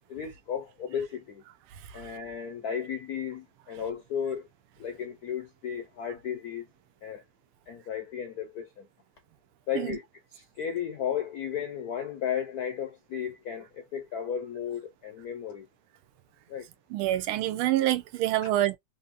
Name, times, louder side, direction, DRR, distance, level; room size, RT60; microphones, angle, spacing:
voice 1, 0.1-1.4 1.9-4.5 4.8-6.7 7.0-7.2 7.7-8.9 9.7-10.1 10.3-15.7 16.5-16.7 18.4-18.5, left 8 dB, 70° left, 0.9 m, -34 dB
voice 2, 16.9-18.8, right 14 dB, 85° right, 1.4 m, -26 dB
4.3 x 2.7 x 2.5 m
omnidirectional pair, 2.3 m